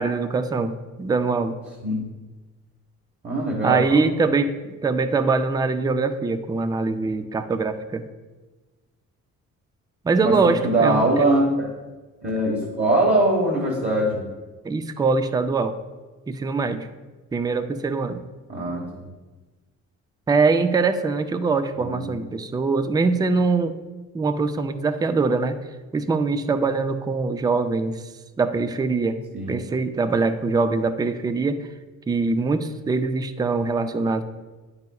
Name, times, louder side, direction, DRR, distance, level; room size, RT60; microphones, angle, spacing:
voice 1, 0.0-1.6 3.6-8.0 10.0-11.3 14.6-15.8 16.3-16.9 17.3-18.2 20.3-23.8 24.1-25.6 25.9-28.0 28.4-29.2 29.5-31.7 32.1-34.2, right 4 dB, 15° right, 10 dB, 0.4 m, -23 dB
voice 2, 3.2-4.0 10.2-11.7 12.2-14.2 18.5-19.1 21.8-22.1 29.3-29.5, right 1 dB, 30° right, -3 dB, 1.3 m, -22 dB
9.2 x 5.4 x 2.3 m, 1.2 s
cardioid pair, 90°, 30 cm